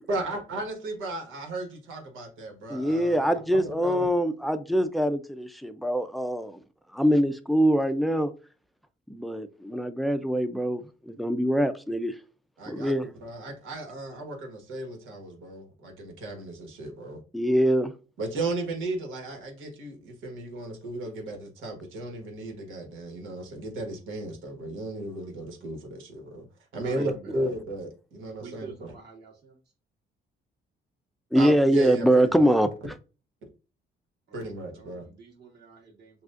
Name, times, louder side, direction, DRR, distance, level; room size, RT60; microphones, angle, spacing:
voice 1, 0.1-4.1 12.6-17.2 18.2-26.4 26.7-28.9 31.3-32.5 34.3-35.0, right 2 dB, 90° right, 2 dB, 1.4 m, -35 dB
voice 2, 2.7-6.6 6.9-8.3 9.1-12.1 12.7-13.1 17.3-17.9 27.0-27.1 31.3-32.7, equal, ahead, 10 dB, 0.5 m, -24 dB
voice 3, 26.8-27.3 28.4-29.5 34.3-34.4 34.8-36.2, right 4 dB, 55° right, -3 dB, 2.2 m, -47 dB
6.0 x 2.4 x 2.5 m, 0.34 s
cardioid pair, 90°, 20 cm